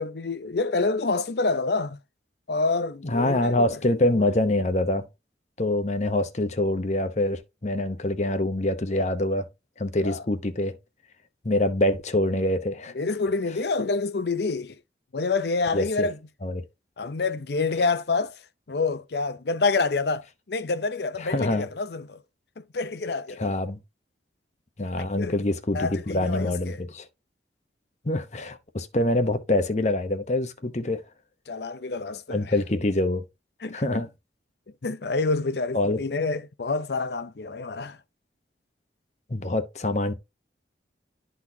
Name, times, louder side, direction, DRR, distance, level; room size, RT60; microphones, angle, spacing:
voice 1, 0.0-2.0 2.5-3.8 10.0-10.2 12.9-14.8 15.1-16.2 17.0-18.4 18.7-22.2 22.6-23.6 25.0-25.3 25.7-26.8 31.5-32.5 33.6-34.0 34.8-38.0, left 3 dB, 65° left, 0.6 m, -27 dB
voice 2, 3.0-5.1 5.6-9.5 9.8-10.8 11.4-12.9 15.7-16.1 16.4-16.6 21.2-21.7 23.4-23.8 24.8-27.1 28.0-31.0 32.3-33.2 33.7-34.1 35.7-36.0 39.3-40.1, left 1 dB, 40° left, 0.9 m, -25 dB
12.0 x 4.1 x 2.8 m
head